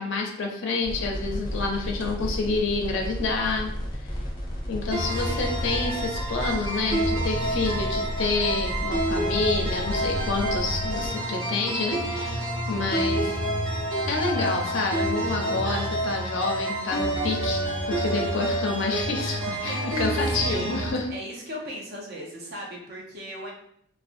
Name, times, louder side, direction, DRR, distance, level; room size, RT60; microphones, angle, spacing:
voice 1, 0.0-3.7 4.7-13.4 14.0-21.1, left 3 dB, 65° left, 0 dB, 0.4 m, -28 dB
sound 1, 0.8-11.1, equal, 20° left, 0.6 m, -33 dB
sound 2, 4.9-20.9, right 1 dB, 85° right, 0.9 m, -28 dB
voice 2, 5.1-5.7 19.5-20.8 21.1-23.5, equal, 50° right, -2 dB, 0.5 m, -39 dB
2.5 x 2.2 x 2.4 m, 0.70 s
head